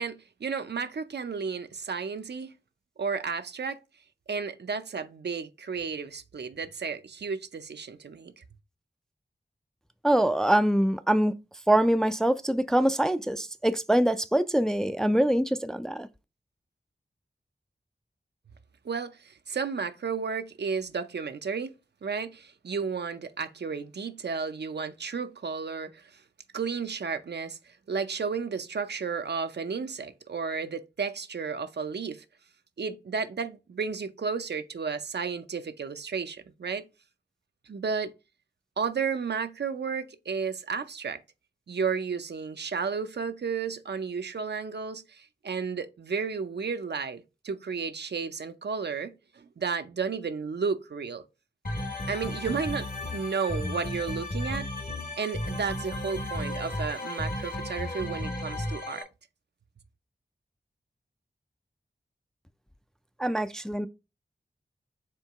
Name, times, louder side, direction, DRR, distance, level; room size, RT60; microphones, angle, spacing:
voice 1, 0.0-2.5 3.0-3.8 4.3-8.4 18.8-21.7 22.0-26.2 26.5-32.2 32.8-36.8 37.7-38.1 38.8-41.2 41.7-51.2 52.1-54.7 54.9-59.1, right 5 dB, 70° right, 0.5 m, -33 dB
voice 2, 10.0-11.3 11.7-16.1 63.2-63.9, right 1 dB, 5° left, 0.3 m, -24 dB
sound 1, 51.6-59.0, left 1 dB, 50° left, 1.1 m, -34 dB
4.5 x 2.9 x 3.5 m
wide cardioid pair, 45°, 18 cm